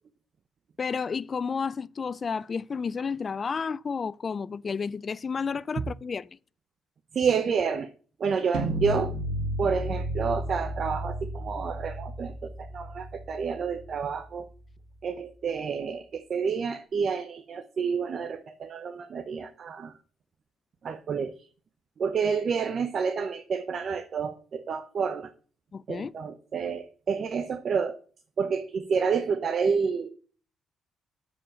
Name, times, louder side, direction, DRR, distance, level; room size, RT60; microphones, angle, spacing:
voice 1, 0.8-6.4 25.7-26.1, left 5 dB, 40° left, 0.3 m, -31 dB
voice 2, 7.1-7.9 8.2-9.2 9.6-14.5 15.0-19.9 20.8-21.5 22.0-25.3 25.9-28.0 28.4-30.1, right 6 dB, 50° right, 0.7 m, -29 dB
sound 1, 8.5-14.5, equal, 90° right, 1.3 m, -33 dB
7.1 x 4.9 x 6.2 m
cardioid pair, 90°, 0 cm